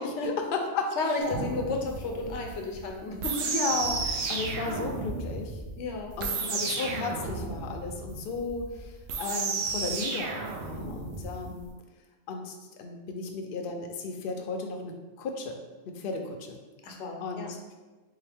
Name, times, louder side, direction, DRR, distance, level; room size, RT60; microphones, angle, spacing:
voice 1, 0.0-0.9 3.4-5.6 6.2-11.7 12.3-16.6 17.2-17.5, left 4 dB, 60° left, 3 dB, 0.7 m, -34 dB
voice 2, 1.0-3.5 4.0-4.1 5.8-6.6 16.8-17.5, left 3 dB, 90° left, 2 dB, 0.9 m, -33 dB
sound 1, 1.2-11.7, right 4 dB, 75° right, 0.8 m, -33 dB
3.8 x 2.8 x 3.4 m, 1.2 s
omnidirectional pair, 1.2 m